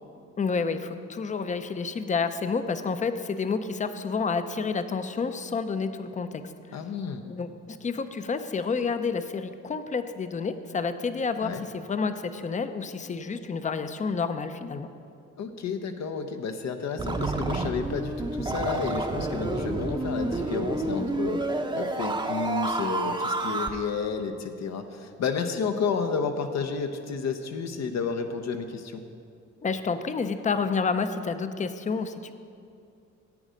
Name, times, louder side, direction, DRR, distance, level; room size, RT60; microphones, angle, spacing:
voice 1, 0.4-6.4 6.7-6.8 7.3-14.9 29.6-32.3, left 5 dB, 25° left, 10 dB, 0.6 m, -29 dB
voice 2, 6.7-7.2 11.4-11.6 15.4-29.0, left 5 dB, 60° left, 6 dB, 0.8 m, -31 dB
sound 1, 17.0-23.7, right 2 dB, 15° right, 0.7 m, -29 dB
10.5 x 8.0 x 5.1 m, 2.4 s
cardioid pair, 90°, 30 cm